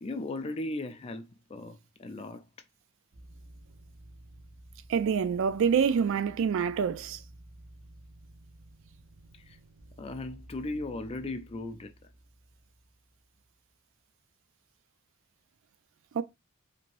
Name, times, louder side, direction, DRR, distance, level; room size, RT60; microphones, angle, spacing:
voice 1, 0.0-2.5 9.4-9.6 10.0-12.1, left 2 dB, 25° left, 0.3 m, -37 dB
sound 1, 3.1-13.5, right 1 dB, 40° right, 0.7 m, -53 dB
voice 2, 4.9-7.2 16.1-16.2, right 6 dB, 60° right, 0.3 m, -26 dB
3.1 x 2.9 x 2.5 m
head